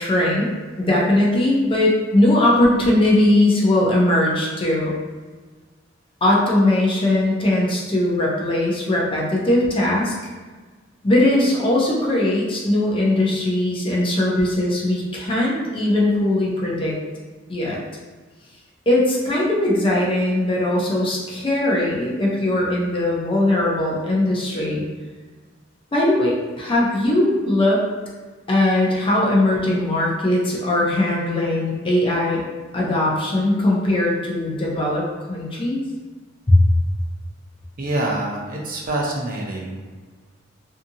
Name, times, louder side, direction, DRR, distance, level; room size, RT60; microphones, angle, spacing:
voice 1, 0.0-5.0 6.2-10.1 11.0-16.9 17.5-17.8 18.9-24.9 25.9-27.8 28.5-32.4 32.7-35.8 36.5-36.6, left 1 dB, 25° left, -4 dB, 0.5 m, -19 dB
voice 2, 37.8-39.8, right 1 dB, 45° right, -2 dB, 0.5 m, -26 dB
2.7 x 2.4 x 2.6 m, 1.4 s
head